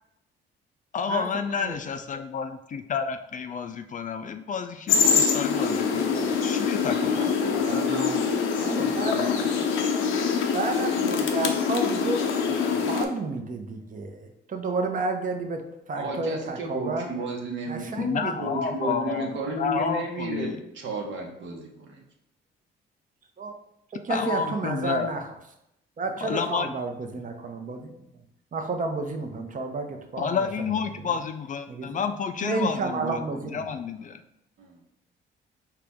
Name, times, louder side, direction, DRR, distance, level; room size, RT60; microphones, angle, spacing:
voice 1, 0.9-7.3 18.0-20.6 24.1-25.1 26.2-26.7 30.2-34.2, left 6 dB, 40° left, 8 dB, 0.4 m, -30 dB
sound 1, 4.9-13.0, left 6 dB, 90° left, 0.6 m, -24 dB
voice 2, 7.2-8.3 8.6-10.0 15.9-17.9 18.4-22.0 33.0-33.2 34.6-34.8, right 2 dB, 70° right, 1 dB, 1.1 m, -33 dB
voice 3, 8.6-9.3 10.5-17.1 17.7-18.3 23.4-23.6 23.9-25.2 26.0-27.9 28.5-30.4 31.1-31.2 31.7-32.0 32.4-33.6, right 3 dB, 40° right, 5 dB, 0.7 m, -31 dB
4.8 x 3.0 x 3.5 m, 0.82 s
cardioid pair, 90°, 20 cm